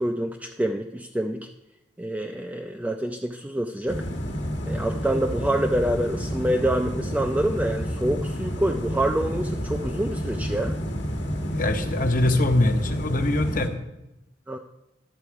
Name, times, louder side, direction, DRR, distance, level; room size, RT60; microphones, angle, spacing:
voice 1, 0.0-1.5 2.0-4.0 4.6-10.8 14.5-14.6, right 1 dB, 10° right, 3 dB, 0.4 m, -26 dB
sound 1, 3.9-13.7, equal, 70° left, 1.3 m, -30 dB
voice 2, 11.4-13.7, left 2 dB, 50° left, 7 dB, 0.8 m, -23 dB
11.0 x 6.9 x 4.6 m, 0.92 s
head